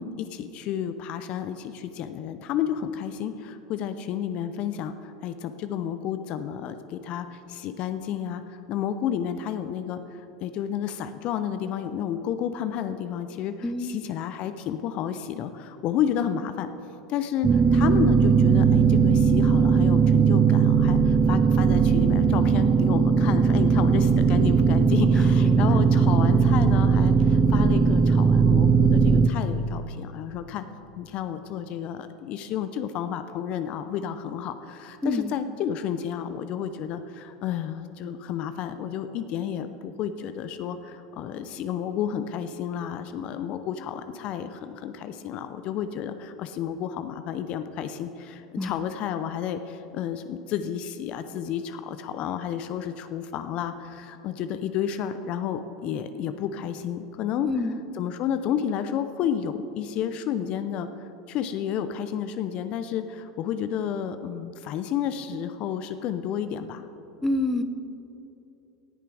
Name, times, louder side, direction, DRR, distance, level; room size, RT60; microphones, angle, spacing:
voice 1, 0.0-16.7 17.1-30.6 31.0-57.5 58.0-60.9 61.3-66.8, left 9 dB, 50° left, 10 dB, 0.6 m, -31 dB
sound 1, 17.4-29.3, right 5 dB, 25° right, 0.5 m, -19 dB
voice 2, 25.2-25.8 35.0-35.3 48.6-48.8 57.4-57.8 67.2-67.6, left 2 dB, 10° left, 9 dB, 0.7 m, -28 dB
18.0 x 6.8 x 4.9 m, 2.9 s
hypercardioid pair, 90°, 2 cm